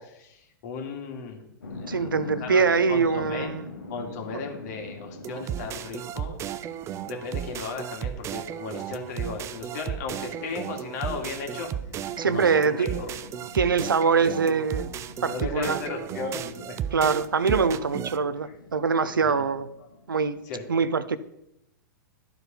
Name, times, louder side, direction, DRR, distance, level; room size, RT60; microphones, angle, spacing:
voice 1, 0.0-2.0 2.4-2.6 2.9-3.5 3.9-6.4 7.0-11.7 12.2-13.7 15.2-16.8 18.9-19.5 19.8-19.9 20.5-20.6, left 4 dB, 55° left, 2 dB, 2.3 m, -36 dB
sound 1, 1.6-20.6, left 3 dB, 85° left, 1.2 m, -45 dB
voice 2, 1.9-3.7 4.3-4.4 12.2-13.0 13.5-14.9 15.2-15.8 16.9-19.7 20.1-20.4 20.7-21.2, right 5 dB, 90° right, 14 dB, 0.6 m, -23 dB
sound 2, 5.2-18.2, right 10 dB, 25° right, 0.5 m, -34 dB
12.0 x 4.7 x 5.2 m, 0.84 s
hypercardioid pair, 105°, 11 cm